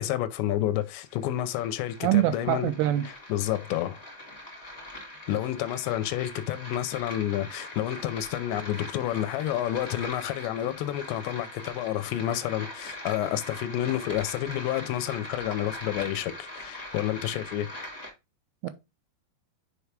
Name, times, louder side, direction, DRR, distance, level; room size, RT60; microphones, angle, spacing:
voice 1, 0.0-2.7 3.3-4.0 5.3-17.7, left 12 dB, 90° left, 2.9 m, -29 dB
sound 1, 0.8-18.1, left 1 dB, 40° left, 0.5 m, -42 dB
voice 2, 2.0-3.1 18.6-18.7, right 13 dB, 80° right, 2.5 m, -24 dB
6.9 x 4.7 x 3.3 m
omnidirectional pair, 4.9 m